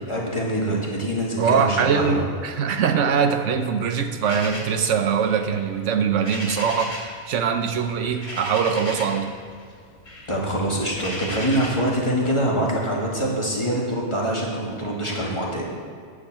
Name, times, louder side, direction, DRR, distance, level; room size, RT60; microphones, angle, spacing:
voice 1, 0.1-2.2 10.3-15.7, right 1 dB, 25° left, -3 dB, 2.0 m, -24 dB
voice 2, 1.4-7.0 7.3-9.4, right 6 dB, 85° right, 7 dB, 1.1 m, -22 dB
sound 1, 4.2-7.2 7.4-9.3 9.6-11.9, left 1 dB, 60° left, 2.7 m, -36 dB
8.7 x 7.7 x 7.4 m, 2.2 s
omnidirectional pair, 1.2 m